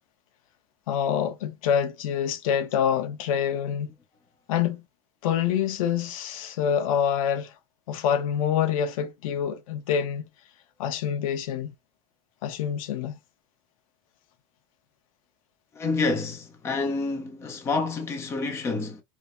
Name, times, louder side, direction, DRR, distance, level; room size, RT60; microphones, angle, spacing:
voice 1, 0.9-3.9 4.5-4.8 5.2-7.5 7.9-10.2 10.8-11.7 12.4-13.1, left 8 dB, 90° left, 0.9 m, -26 dB
voice 2, 15.8-19.0, left 3 dB, 15° left, 0.7 m, -28 dB
4.7 x 2.1 x 2.5 m
supercardioid pair, 180°, 17 cm